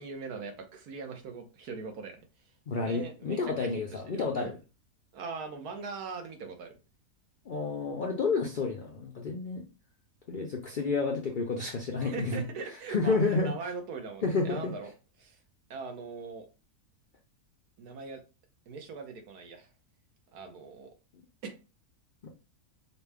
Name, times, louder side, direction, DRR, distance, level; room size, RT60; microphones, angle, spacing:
voice 1, 0.0-2.2 2.8-4.5 5.1-6.7 12.0-14.9 15.2-15.4 15.7-16.5 17.8-18.2 18.7-19.7 20.3-20.9 21.4-21.6, right 4 dB, 85° right, 1.4 m, -41 dB
voice 2, 2.7-4.6 7.5-9.6 10.3-12.4 12.9-13.5 14.2-14.7 22.2-22.3, left 4 dB, 70° left, 0.4 m, -30 dB
5.4 x 2.2 x 3.4 m
omnidirectional pair, 1.6 m